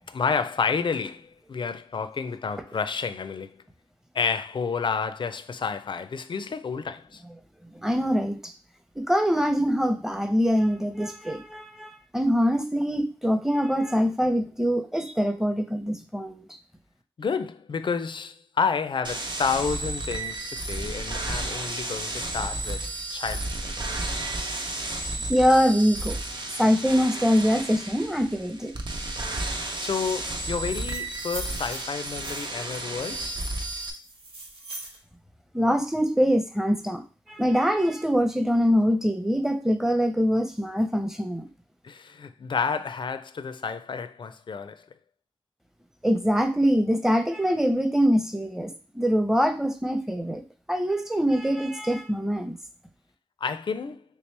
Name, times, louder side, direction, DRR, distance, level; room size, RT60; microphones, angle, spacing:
voice 1, 0.0-3.5 4.1-7.2 17.2-24.1 29.3-29.4 29.8-33.4 41.8-44.9 53.4-54.0, left 5 dB, 60° left, 0.4 m, -30 dB
voice 2, 7.8-8.4 9.0-16.4 25.3-26.2 26.6-28.7 35.5-37.0 37.3-41.5 46.0-52.6, equal, 5° right, 0.7 m, -24 dB
sound 1, 19.0-33.9, right 2 dB, 55° right, 0.7 m, -32 dB
sound 2, 30.6-32.7 33.3-35.0, right 2 dB, 85° right, 0.8 m, -42 dB
3.3 x 3.0 x 3.2 m
cardioid pair, 55°, 9 cm